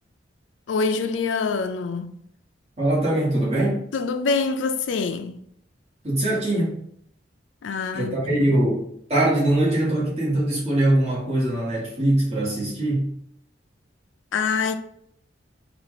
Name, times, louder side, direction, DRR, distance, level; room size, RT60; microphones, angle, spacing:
voice 1, 0.7-2.2 3.9-5.4 7.6-8.6 14.3-14.8, left 4 dB, 85° left, 0.4 m, -25 dB
voice 2, 2.8-3.8 6.0-6.8 7.9-13.1, right 1 dB, 35° right, 1.7 m, -22 dB
4.2 x 2.5 x 4.0 m
head